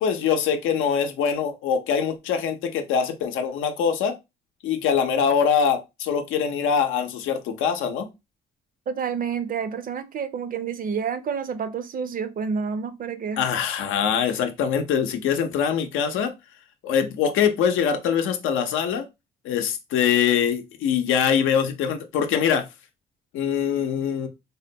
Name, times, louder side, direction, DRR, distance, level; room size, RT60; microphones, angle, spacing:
voice 1, 0.0-4.1 4.6-8.1 13.4-16.3 16.8-19.0 19.4-22.6 23.3-24.3, left 7 dB, 90° left, 0.6 m, -23 dB
voice 2, 8.9-13.4, right 6 dB, 45° right, 0.5 m, -29 dB
3.4 x 2.2 x 2.7 m
cardioid pair, 90°, 20 cm